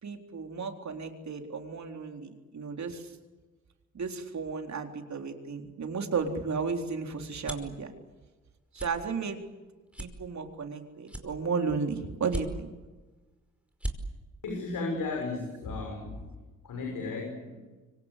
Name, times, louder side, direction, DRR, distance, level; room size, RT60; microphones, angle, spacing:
voice 1, 0.0-3.1 3.9-7.9 8.7-9.4 10.0-12.7, right 5 dB, 60° right, 4 dB, 4.0 m, -34 dB
sound 1, 6.5-7.8 8.3-8.5 8.7-8.9 9.4-9.5 9.9-10.7 11.1-11.7 12.2-12.9 13.3-13.4 13.7-14.0, right 1 dB, 5° right, 5.1 m, -38 dB
voice 2, 14.4-16.2 16.6-17.7, left 3 dB, 85° left, 1 dB, 6.7 m, -34 dB
25.5 x 25.0 x 8.3 m, 1.2 s
cardioid pair, 65°, 33 cm